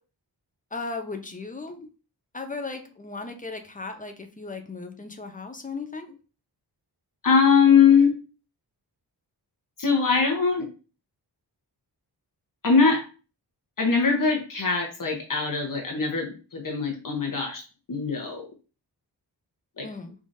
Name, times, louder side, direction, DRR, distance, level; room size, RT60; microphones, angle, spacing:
voice 1, 0.7-1.8 2.3-6.1 19.8-20.1, left 3 dB, 20° left, 5 dB, 0.7 m, -36 dB
voice 2, 7.2-8.1 9.8-10.7 12.6-13.0 13.8-17.6 17.9-18.5 19.8-19.9, left 5 dB, 50° left, 1 dB, 1.1 m, -21 dB
4.9 x 3.7 x 2.6 m, 0.34 s
wide cardioid pair, 150°, 41 cm